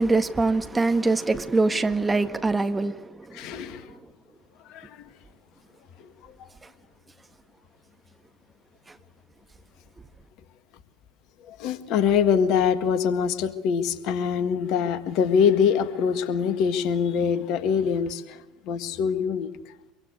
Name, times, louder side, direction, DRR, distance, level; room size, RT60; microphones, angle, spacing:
voice 1, 0.0-3.8, right 3 dB, 15° right, 1.7 m, -24 dB
voice 2, 3.3-4.0 4.6-5.1 6.0-6.5 11.4-19.7, left 7 dB, 55° left, 1.7 m, -24 dB
24.5 x 24.0 x 8.1 m
figure-of-eight pair, 65°, 0 cm